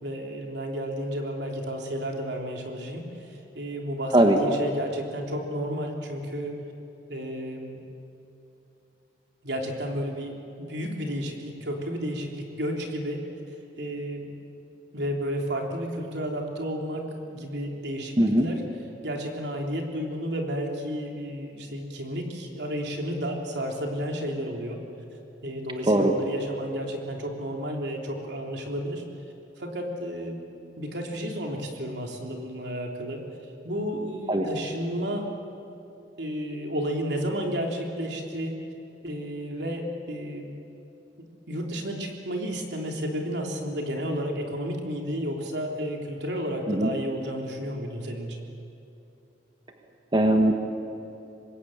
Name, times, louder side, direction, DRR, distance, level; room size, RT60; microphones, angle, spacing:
voice 1, 0.0-6.6 7.1-7.8 9.4-13.2 13.8-14.3 14.9-18.1 18.4-18.6 19.0-24.8 25.4-29.0 29.6-30.4 30.8-33.2 33.6-35.3 36.2-38.6 39.0-40.5 41.5-48.4, equal, 75° right, 1 dB, 3.4 m, -32 dB
voice 2, 50.1-50.7, right 1 dB, 25° right, 3 dB, 1.5 m, -20 dB
25.0 x 21.0 x 8.8 m, 2.8 s
head